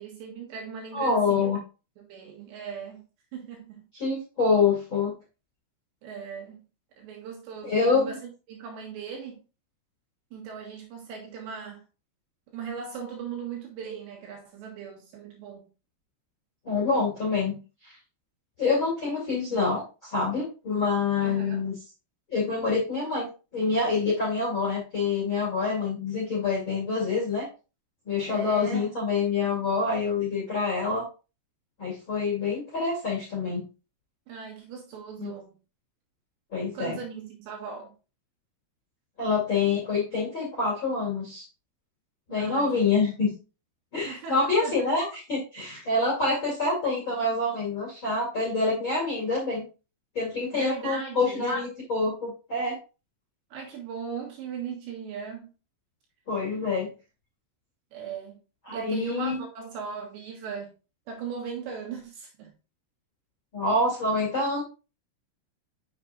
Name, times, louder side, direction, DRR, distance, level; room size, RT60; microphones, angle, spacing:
voice 1, 0.0-1.5 2.0-3.0 3.3-3.8 6.0-6.6 7.0-9.4 10.3-11.8 12.5-15.6 21.2-21.7 28.2-28.9 34.3-35.6 36.7-37.9 42.3-42.9 44.1-44.8 50.5-51.4 53.5-55.5 57.9-58.4 58.7-60.7 61.1-62.5, right 6 dB, 70° right, 3.1 m, -38 dB
voice 2, 0.9-1.6 3.9-5.1 7.6-8.1 16.6-17.6 17.8-17.9 18.6-21.7 22.3-27.5 28.0-31.1 31.8-33.6 35.2-35.3 36.5-37.0 39.2-41.4 42.3-43.3 43.9-49.6 50.1-52.8 56.3-56.9 58.7-59.4 63.5-64.6, left 4 dB, 40° left, 1.8 m, -26 dB
7.3 x 6.6 x 2.4 m
omnidirectional pair, 6.0 m